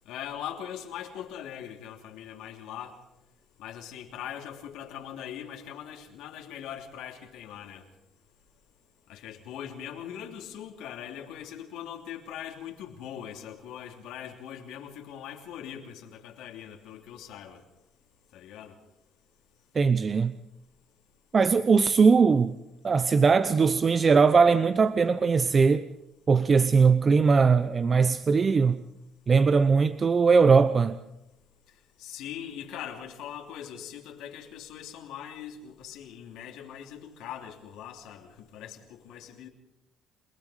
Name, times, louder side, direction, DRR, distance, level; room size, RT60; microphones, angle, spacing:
voice 1, 0.1-3.0 3.6-7.8 9.1-17.6 18.3-18.7 32.0-39.5, left 9 dB, 80° left, 3.0 m, -41 dB
voice 2, 19.7-20.3 21.3-22.6 22.8-25.9 26.3-28.8 29.3-31.0, right 5 dB, 35° right, 0.7 m, -20 dB
29.0 x 19.0 x 5.1 m
cardioid pair, 90°, 0 cm